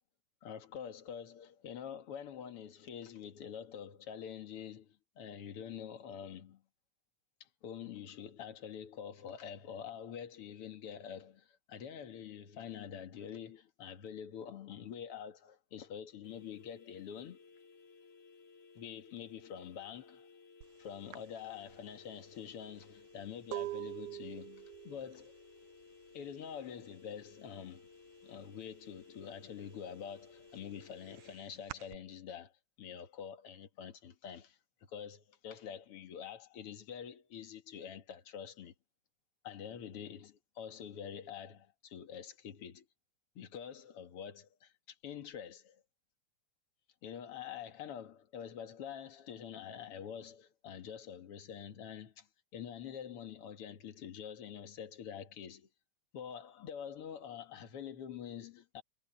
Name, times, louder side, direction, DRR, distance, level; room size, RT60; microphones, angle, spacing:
voice 1, 0.4-6.6 7.4-17.4 18.8-20.3 20.8-25.3 26.1-27.9 28.2-32.5 32.8-34.6 34.9-38.7 39.4-42.9 43.4-45.8 47.0-55.7 56.1-58.8, left 8 dB, 50° left, 2.3 m, -46 dB
sound 1, 16.2-31.4, left 5 dB, 80° left, 5.8 m, -59 dB
sound 2, 20.6-20.8 21.1-26.8 27.1-27.6 27.9-29.0 29.4-32.0, right 16 dB, 80° right, 2.0 m, -45 dB
omnidirectional pair, 3.6 m